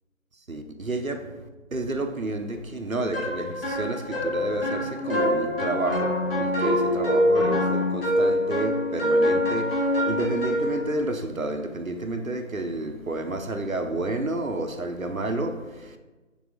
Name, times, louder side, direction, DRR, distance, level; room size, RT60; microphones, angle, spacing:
voice 1, 0.5-16.0, right 2 dB, 80° right, 1.0 m, -30 dB
sound 1, 3.1-10.8, left 1 dB, 40° left, 2.0 m, -24 dB
5.9 x 3.5 x 5.7 m
figure-of-eight pair, 170°, 41 cm